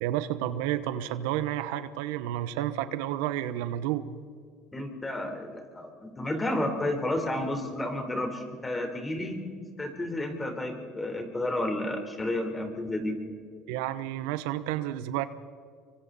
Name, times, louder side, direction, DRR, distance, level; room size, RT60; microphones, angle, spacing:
voice 1, 0.0-4.0 13.7-15.3, right 12 dB, 80° right, 13 dB, 0.9 m, -30 dB
voice 2, 4.7-9.4 9.8-13.2, left 1 dB, 15° left, 5 dB, 4.0 m, -31 dB
25.5 x 24.0 x 4.2 m, 2.1 s
supercardioid pair, 105°, 0 cm